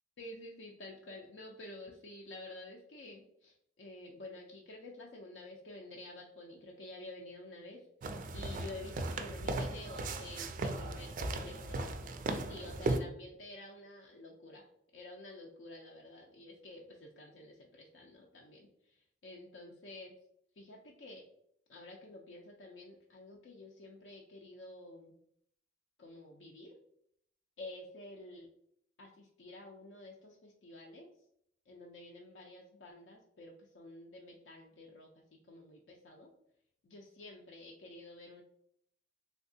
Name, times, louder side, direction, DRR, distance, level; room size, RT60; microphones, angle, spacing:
voice 1, 0.2-7.8 8.3-11.9 12.3-14.7 14.9-20.1 20.6-21.2 21.7-25.2 26.0-26.8 27.6-28.5 29.0-31.1 31.7-36.3 36.8-38.4, left 2 dB, 70° left, -1 dB, 0.5 m, -50 dB
sound 1, 8.0-13.0, right 2 dB, 45° right, 0.3 m, -37 dB
3.4 x 2.8 x 2.6 m, 0.71 s
head